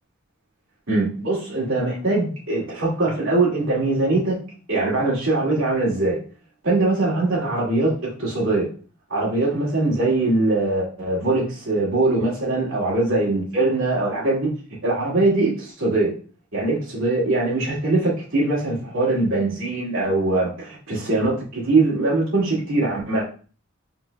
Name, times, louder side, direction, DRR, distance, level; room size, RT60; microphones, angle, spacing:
voice 1, 0.9-4.4 4.7-6.2 6.6-8.7 9.1-14.5 14.8-16.1 16.5-23.2, right 2 dB, 75° right, -6 dB, 2.2 m, -22 dB
5.9 x 3.9 x 2.3 m, 0.38 s
head